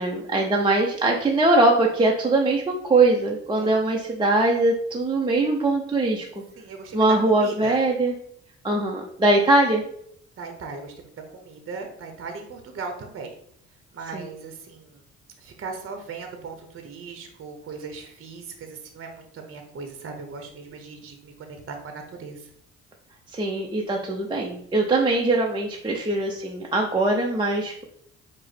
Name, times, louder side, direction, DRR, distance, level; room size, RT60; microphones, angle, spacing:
voice 1, 0.0-6.4 6.9-8.1 8.6-9.8 14.1-14.3 23.3-27.8, right 2 dB, 15° right, -1 dB, 0.5 m, -21 dB
voice 2, 6.6-7.0 7.4-7.8 10.4-13.3 13.9-14.9 15.4-22.4, right 4 dB, 45° right, 5 dB, 0.8 m, -38 dB
4.9 x 2.1 x 4.1 m, 0.71 s
cardioid pair, 90°, 30 cm